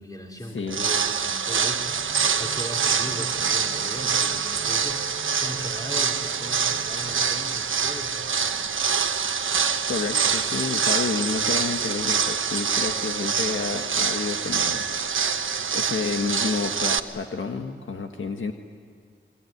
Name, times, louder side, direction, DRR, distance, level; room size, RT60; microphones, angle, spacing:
voice 1, 0.0-8.6, equal, 20° left, 0 dB, 4.6 m, -38 dB
voice 2, 0.5-0.9 9.9-15.4 15.7-18.5, left 4 dB, 75° left, 4 dB, 1.6 m, -30 dB
sound 1, 0.7-17.0, right 6 dB, 75° right, 1.1 m, -25 dB
sound 2, 1.9-7.2, right 4 dB, 20° right, 1.8 m, -43 dB
27.5 x 22.0 x 9.6 m, 2.1 s
wide cardioid pair, 70°, 21 cm